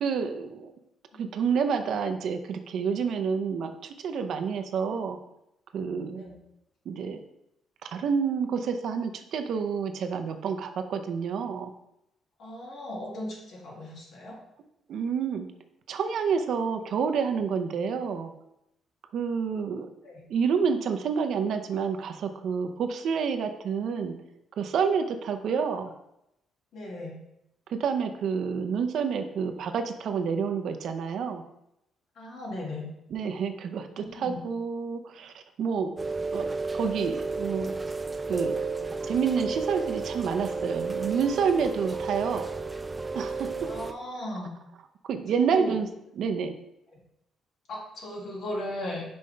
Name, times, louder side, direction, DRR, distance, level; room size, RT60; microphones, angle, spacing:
voice 1, 0.0-0.7 1.2-5.2 5.7-6.2 6.9-7.2 7.8-11.7 14.9-15.4 15.9-18.3 19.1-19.9 20.3-24.1 24.6-25.9 27.7-31.4 33.1-35.9 36.3-37.7 38.3-38.6 39.0-42.5 43.1-43.5 45.1-45.9 46.2-46.5, right 6 dB, 70° right, 7 dB, 0.6 m, -28 dB
voice 2, 12.4-14.4 20.0-20.2 26.7-27.1 32.2-32.9 34.0-34.4 43.6-44.5 45.3-45.8 47.7-49.0, left 1 dB, 70° left, -3 dB, 2.0 m, -37 dB
Rain, 36.0-43.9, right 4 dB, 20° right, 0.4 m, -32 dB
5.5 x 5.1 x 3.3 m, 0.83 s
cardioid pair, 90°, 0 cm